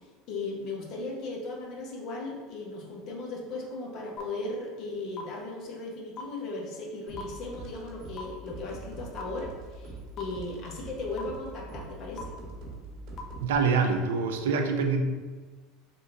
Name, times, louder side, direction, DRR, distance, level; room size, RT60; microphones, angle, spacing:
voice 1, 0.3-12.4, left 2 dB, 55° left, -1 dB, 1.0 m, -37 dB
sound 1, 4.2-4.3 5.2-5.3 6.2-6.3 7.2-7.3 8.2-8.3 9.2-9.3 10.2-10.3 11.2-11.3 12.2-12.3 13.2-13.3, left 7 dB, 35° left, 0.7 m, -37 dB
sound 2, 7.1-13.5, right 2 dB, 60° right, 1.1 m, -43 dB
voice 2, 13.4-15.0, right 5 dB, 85° right, 5 dB, 0.5 m, -25 dB
3.6 x 2.6 x 4.4 m, 1.4 s
supercardioid pair, 105°, 0 cm